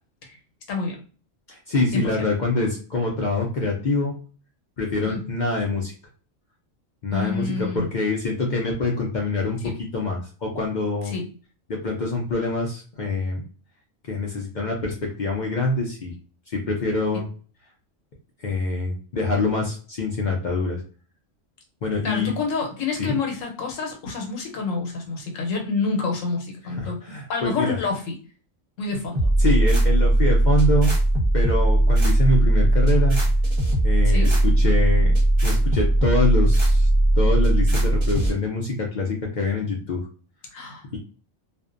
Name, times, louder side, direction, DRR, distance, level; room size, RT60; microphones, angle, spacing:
voice 1, 0.7-1.0 1.9-2.1 5.1-5.2 7.1-7.9 9.6-9.8 11.0-11.2 22.0-27.0 27.3-28.1 28.8-29.2 34.0-34.4 40.5-41.0, left 4 dB, 80° left, 2 dB, 1.1 m, -28 dB
voice 2, 1.5-4.2 4.8-5.9 7.0-11.1 11.7-13.4 14.1-16.1 16.5-17.3 18.4-20.8 21.8-22.3 23.0-23.1 26.8-27.8 29.4-30.9 31.3-33.2 33.8-35.1 35.4-36.9 37.1-40.0, left 2 dB, 60° left, -1 dB, 0.5 m, -25 dB
sound 1, 29.1-38.3, right 1 dB, 30° right, 0.7 m, -18 dB
2.5 x 2.1 x 2.4 m, 0.38 s
omnidirectional pair, 1.3 m